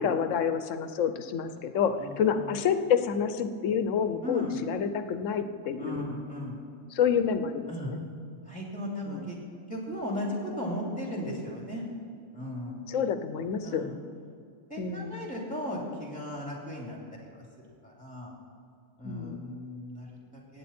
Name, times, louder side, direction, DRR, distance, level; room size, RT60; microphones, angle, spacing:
voice 1, 0.0-6.0 6.9-8.0 9.1-9.3 12.9-13.9 14.8-15.2 19.0-19.4, left 7 dB, 85° left, 10 dB, 1.1 m, -28 dB
voice 2, 2.0-2.5 4.2-4.6 5.8-6.6 7.7-8.0 8.5-9.4 9.7-11.8 12.3-12.8 13.6-13.9 14.7-17.4 17.8-18.3 19.0-20.6, left 1 dB, 5° left, -2 dB, 2.7 m, -36 dB
17.0 x 8.9 x 4.3 m, 2.5 s
omnidirectional pair, 1.3 m